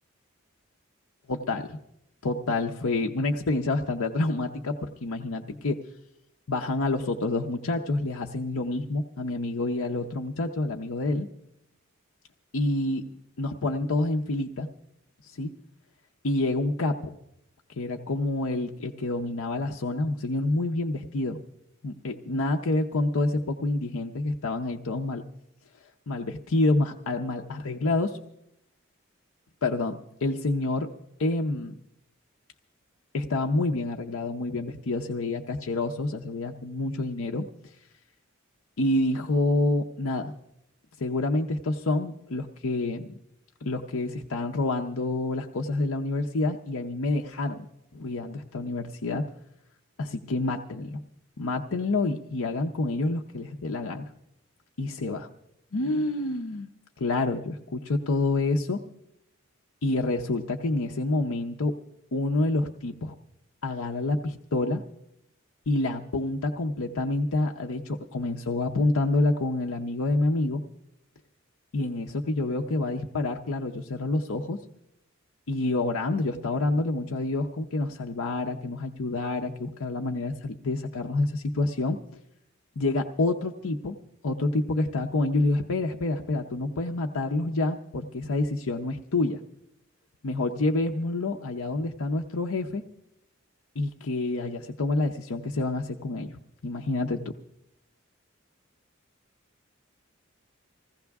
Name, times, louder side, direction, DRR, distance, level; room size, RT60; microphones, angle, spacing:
voice 1, 1.3-1.8 2.2-5.8 6.5-11.3 12.5-13.0 13.4-14.7 15.2-15.5 16.2-17.1 17.8-21.4 21.8-25.2 26.1-28.2 29.6-30.9 31.2-31.7 33.1-37.7 38.8-40.3 41.0-43.1 43.6-47.7 47.9-49.2 50.0-51.0 51.4-54.1 54.8-55.3 55.7-56.7 57.0-58.8 59.8-61.8 62.1-63.1 63.6-64.8 65.7-70.6 71.7-74.6 75.5-82.0 82.8-84.0 84.2-89.4 90.2-92.8 93.8-97.2, left 2 dB, 80° left, 3 dB, 0.7 m, -28 dB
20.5 x 16.0 x 3.5 m, 0.81 s
head